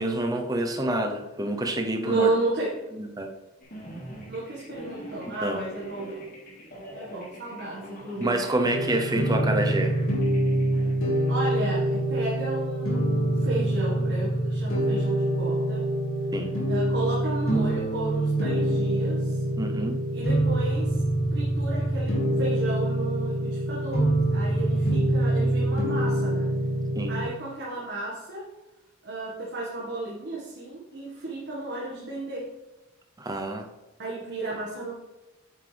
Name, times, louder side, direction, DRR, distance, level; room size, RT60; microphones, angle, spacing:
voice 1, 0.0-2.3 2.9-3.3 5.4-5.6 8.2-10.0 16.3-16.5 19.6-20.0 27.0-27.1 33.2-33.7, right 1 dB, 15° right, 4 dB, 0.7 m, -27 dB
voice 2, 2.0-2.7 4.3-6.1 6.9-8.4 11.3-15.8 16.7-19.4 20.1-21.0 21.3-26.5 27.1-28.5 29.0-32.5 34.0-34.9, right 2 dB, 50° right, -5 dB, 1.7 m, -33 dB
sound 1, 3.6-12.0, equal, 45° left, 3.1 m, -43 dB
sound 2, 8.6-27.2, right 1 dB, 65° left, 2.1 m, -25 dB
8.8 x 7.3 x 3.4 m, 1.0 s
head